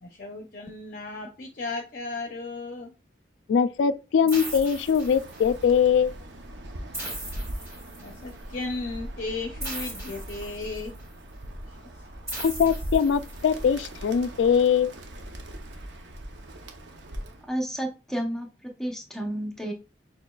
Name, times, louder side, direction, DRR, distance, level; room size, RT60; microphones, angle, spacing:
voice 1, 0.0-2.9 7.0-7.2 8.0-10.9 11.7-11.8, left 3 dB, 50° left, 0.6 m, -35 dB
voice 2, 3.5-6.1 12.4-14.9, left 7 dB, 85° left, 0.3 m, -22 dB
sound 1, 4.3-5.6 6.9-8.3 9.6-11.0 12.3-13.6, right 1 dB, 20° right, 1.9 m, -38 dB
Bird, 4.4-17.5, right 1 dB, 75° right, 0.7 m, -40 dB
voice 3, 17.5-19.7, right 1 dB, 5° left, 0.7 m, -31 dB
6.4 x 3.0 x 2.3 m
head